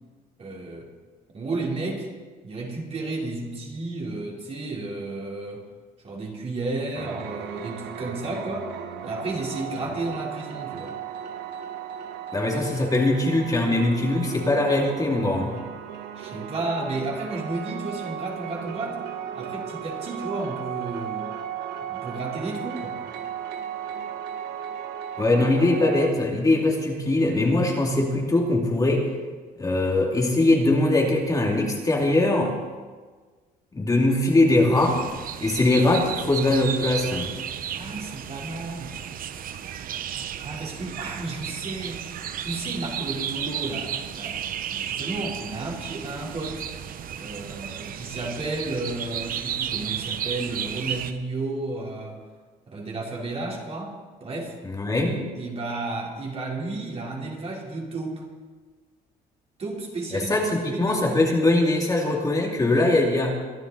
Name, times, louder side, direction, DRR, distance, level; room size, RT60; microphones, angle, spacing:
voice 1, 0.4-0.9 1.3-2.1 2.4-5.6 6.0-8.7 9.0-11.0 16.1-19.0 19.3-21.3 21.9-23.0 37.7-39.0 40.4-42.0 42.4-44.4 44.7-46.6 47.1-52.2 52.7-53.9 54.2-54.6 55.4-58.2 59.6-61.2, right 2 dB, 35° right, -2 dB, 3.7 m, -32 dB
sound 1, 6.9-26.1, right 9 dB, 85° right, 1.2 m, -36 dB
voice 2, 12.3-15.6 25.2-29.1 29.6-32.5 33.7-35.0 35.4-37.3 54.6-55.3 60.1-63.3, left 2 dB, 20° left, -1 dB, 2.6 m, -21 dB
sound 2, 34.8-51.1, right 9 dB, 55° right, 0.9 m, -33 dB
24.0 x 11.0 x 4.0 m, 1.4 s
cardioid pair, 110°, 17 cm